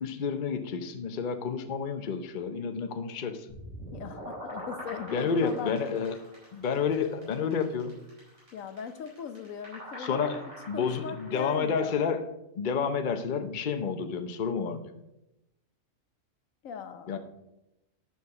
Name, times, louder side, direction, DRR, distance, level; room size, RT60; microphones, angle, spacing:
voice 1, 0.0-3.6 5.1-6.2 6.5-7.9 10.0-10.4 10.7-12.2 12.6-14.9 17.1-17.2, left 6 dB, 45° left, 8 dB, 0.7 m, -30 dB
sound 1, 3.5-11.6, equal, 55° right, 4.8 m, -44 dB
voice 2, 3.9-5.8 6.9-7.0 8.5-12.0 16.6-17.2, left 7 dB, 70° left, 10 dB, 1.1 m, -39 dB
9.8 x 6.2 x 5.8 m, 0.92 s
omnidirectional pair, 1.5 m